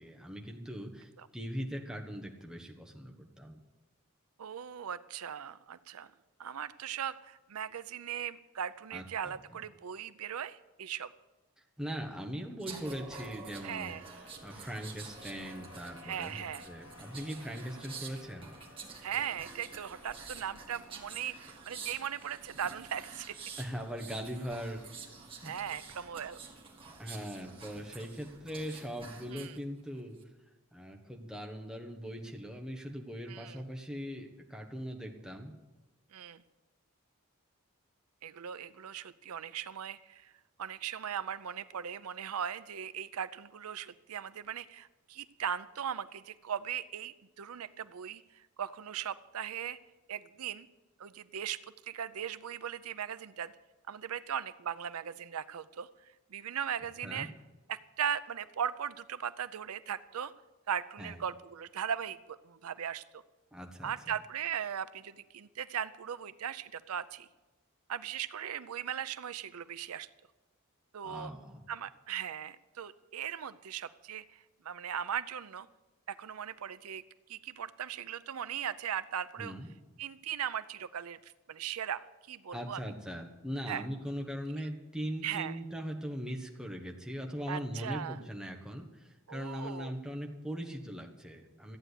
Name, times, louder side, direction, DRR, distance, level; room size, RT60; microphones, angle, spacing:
voice 1, 0.0-3.6 8.9-9.3 11.8-13.9 14.4-18.5 23.6-24.8 27.0-30.2 30.7-35.6 57.0-57.3 61.0-61.2 63.5-63.9 71.0-71.6 79.4-79.7 82.5-91.8, equal, 5° right, 1 dB, 1.4 m, -40 dB
voice 2, 4.4-6.1 6.4-11.1 13.6-14.0 16.0-16.7 19.0-23.4 25.4-26.4 29.3-29.6 33.3-33.6 36.1-36.4 38.2-40.3 40.6-49.8 50.1-50.7 51.0-51.6 51.8-53.5 53.9-57.3 57.7-60.3 60.7-63.2 63.8-67.3 67.9-70.1 70.9-71.3 71.7-75.7 76.1-77.0 77.3-79.5 80.0-82.8 83.7-83.9 84.5-84.7 85.2-85.6 87.5-88.2 89.3-89.9, right 8 dB, 90° right, 14 dB, 0.5 m, -38 dB
sound 1, 12.6-29.6 30.0-30.2, right 4 dB, 25° right, 1.9 m, -48 dB
sound 2, 13.4-27.6, left 2 dB, 60° left, 2.0 m, -59 dB
14.0 x 9.0 x 8.2 m, 1.1 s
head